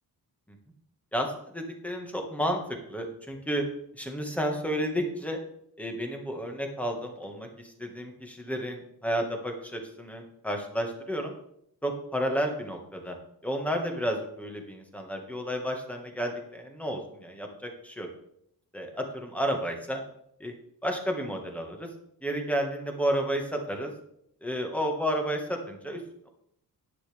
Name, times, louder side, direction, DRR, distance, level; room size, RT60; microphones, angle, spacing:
voice 1, 1.1-3.6 3.9-5.4 5.8-11.3 11.8-13.2 13.4-18.1 18.7-20.0 20.4-20.5 20.8-21.9 22.2-23.9 24.4-26.3, equal, 5° left, 2 dB, 1.6 m, -31 dB
10.0 x 9.6 x 3.4 m, 0.72 s
wide cardioid pair, 155°, 37 cm